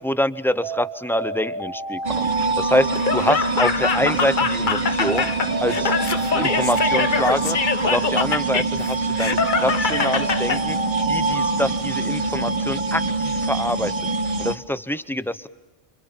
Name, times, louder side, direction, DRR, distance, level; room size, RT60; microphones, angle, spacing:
voice 1, 0.0-2.3 2.6-5.3 5.6-5.9 6.3-10.8 11.1-13.9 14.4-15.5, left 1 dB, ahead, 14 dB, 0.8 m, -25 dB
Alarm, 0.6-4.3 5.0-8.7 9.4-12.6, right 3 dB, 60° right, 2.5 m, -30 dB
sound 1, 2.0-14.6, right 3 dB, 35° right, 1.1 m, -25 dB
Laughter, 2.9-10.6, left 5 dB, 50° left, 1.1 m, -24 dB
29.0 x 26.5 x 7.3 m, 1.2 s
omnidirectional pair, 1.0 m